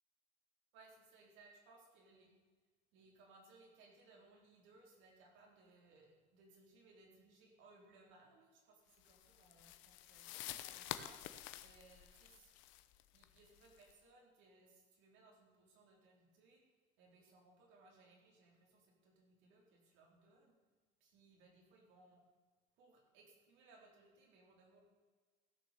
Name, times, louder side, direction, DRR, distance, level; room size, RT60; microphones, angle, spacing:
voice 1, 0.7-2.3 2.9-11.2 11.6-12.5 13.1-16.6 17.0-20.6 21.0-22.2 22.8-24.8, right 3 dB, 80° right, 0 dB, 4.0 m, -65 dB
sound 1, 9.0-13.9, left 13 dB, 85° left, 0.9 m, -50 dB
15.5 x 6.9 x 6.9 m, 1.4 s
cardioid pair, 125°, 19 cm